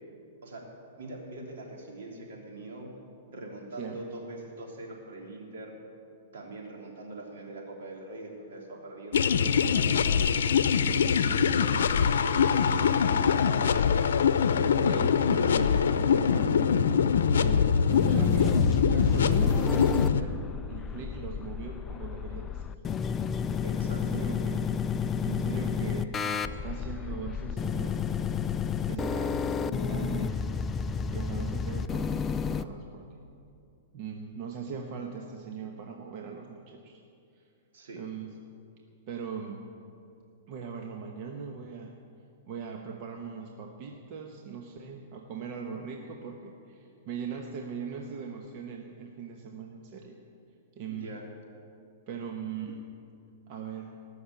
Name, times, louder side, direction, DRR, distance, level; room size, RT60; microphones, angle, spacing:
voice 1, 0.4-2.9 3.3-5.7 6.3-13.8 23.6-24.2 37.7-38.0 50.9-51.2, right 2 dB, 75° right, -1 dB, 3.3 m, -43 dB
voice 2, 3.8-4.1 14.7-16.7 17.4-17.7 18.1-20.4 20.7-22.7 23.9-24.7 25.2-28.1 28.9-30.4 31.1-33.1 33.9-37.0 37.4-37.5 37.9-38.3 39.1-39.7 40.5-42.0 42.5-50.2 50.7-51.1 52.1-52.8 53.5-54.0, right 6 dB, 40° right, 2 dB, 1.1 m, -40 dB
sound 1, 9.1-20.2, left 6 dB, 85° left, 0.7 m, -23 dB
sound 2, 17.9-32.6, left 6 dB, 15° left, 0.3 m, -31 dB
19.0 x 6.6 x 8.5 m, 2.5 s
hypercardioid pair, 150°, 0 cm